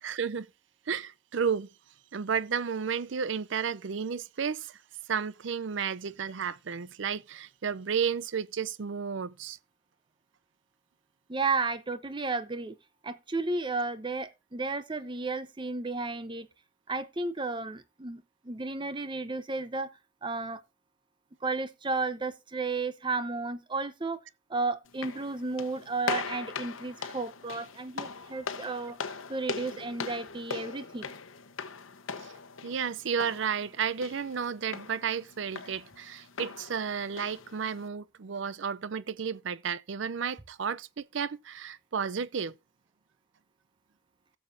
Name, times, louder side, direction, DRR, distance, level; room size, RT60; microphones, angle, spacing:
voice 1, 0.0-0.5 0.9-1.7 2.1-4.8 5.1-9.6 32.6-42.5, right 6 dB, 65° right, 0.5 m, -32 dB
voice 2, 11.3-12.8 13.0-16.5 16.9-19.9 20.2-20.6 21.4-24.2 24.5-29.0 29.3-31.1, right 3 dB, 25° right, 0.7 m, -33 dB
sound 1, 24.9-37.9, left 5 dB, 85° left, 1.0 m, -40 dB
16.5 x 7.0 x 2.6 m
head